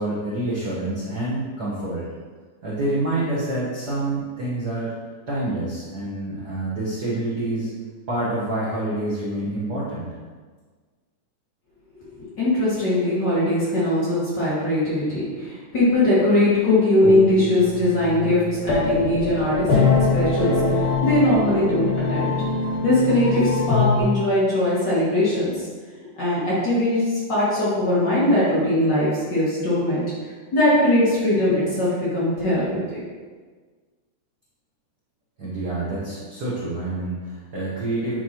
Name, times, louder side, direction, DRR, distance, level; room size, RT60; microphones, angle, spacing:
voice 1, 0.0-2.0 2.6-4.9 5.3-7.7 8.1-10.1 35.4-38.2, right 2 dB, 75° right, -8 dB, 0.9 m, -27 dB
voice 2, 12.4-19.8 20.1-22.3 22.8-25.6 26.2-27.0 27.3-30.0 30.5-33.0, left 1 dB, 40° left, -10 dB, 2.0 m, -20 dB
sound 1, 15.9-24.0, left 3 dB, 80° left, 2.9 m, -24 dB
8.2 x 4.6 x 2.9 m, 1.5 s
omnidirectional pair, 3.6 m